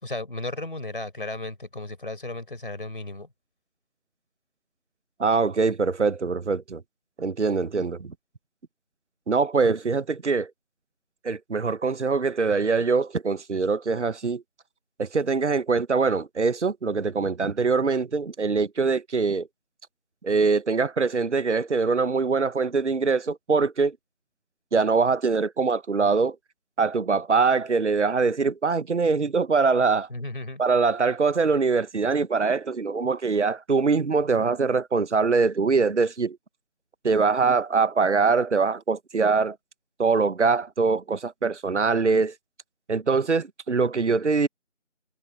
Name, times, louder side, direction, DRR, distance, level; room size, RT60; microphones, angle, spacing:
voice 1, 0.0-3.3 30.1-30.6, left 2 dB, 45° left, 4.2 m, -34 dB
voice 2, 5.2-6.8 7.2-8.1 9.3-10.5 11.2-14.4 15.0-19.5 20.2-24.0 24.7-26.4 26.8-30.1 30.6-36.4 37.0-39.6 40.0-42.3 42.9-44.5, right 4 dB, 65° right, 0.9 m, -23 dB
figure-of-eight pair, 180°, 37 cm